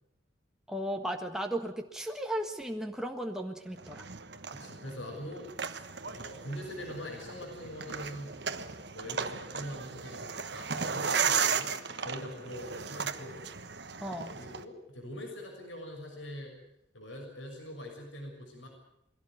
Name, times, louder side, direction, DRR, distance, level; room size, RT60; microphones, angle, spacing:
voice 1, 0.7-4.0 14.0-14.4, right 1 dB, 5° right, 3 dB, 1.5 m, -35 dB
sound 1, 3.8-14.6, right 6 dB, 60° right, 1.3 m, -35 dB
voice 2, 4.3-13.4 14.3-16.5 16.9-18.7, left 1 dB, 85° left, 2 dB, 6.7 m, -43 dB
22.5 x 17.0 x 9.4 m, 0.78 s
head